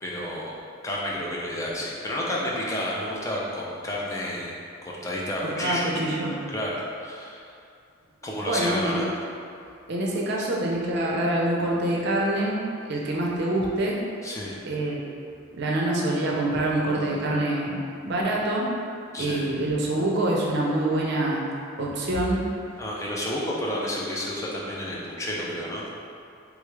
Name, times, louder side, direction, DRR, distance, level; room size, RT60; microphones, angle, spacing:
voice 1, 0.0-0.5 0.8-4.5 5.0-5.9 6.5-7.4 8.2-9.0 14.2-14.6 19.1-19.5 22.8-25.8, left 1 dB, 15° left, -5 dB, 0.4 m, -30 dB
voice 2, 5.4-6.4 8.4-9.0 9.9-12.6 12.9-14.0 14.6-15.0 15.6-17.7 18.0-18.7 19.2-21.4 21.8-22.4, right 1 dB, 55° right, -3 dB, 0.5 m, -25 dB
3.6 x 2.3 x 3.1 m, 2.5 s
head